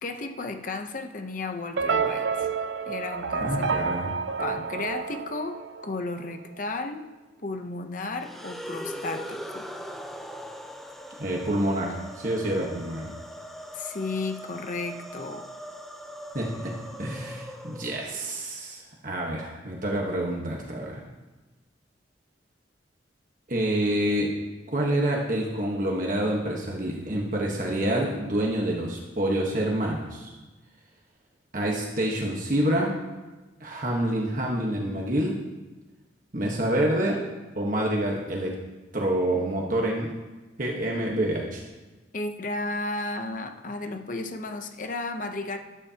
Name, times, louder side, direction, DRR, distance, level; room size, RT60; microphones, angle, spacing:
voice 1, 0.0-2.5 2.9-3.8 4.4-7.1 7.4-9.7 13.7-15.5 42.1-45.6, left 3 dB, 45° left, 6 dB, 0.8 m, -33 dB
sound 1, 1.8-6.1, right 5 dB, 75° right, 0.5 m, -29 dB
voice 2, 3.4-4.1 11.2-13.1 16.3-21.0 23.5-24.3 24.7-30.3 31.5-33.0 33.6-35.4 36.3-37.2 37.5-38.6 38.9-40.1 40.6-41.6, right 1 dB, 45° right, -1 dB, 1.3 m, -27 dB
sound 2, 8.2-18.4, equal, ahead, 0.6 m, -41 dB
12.5 x 12.0 x 2.9 m, 1.2 s
head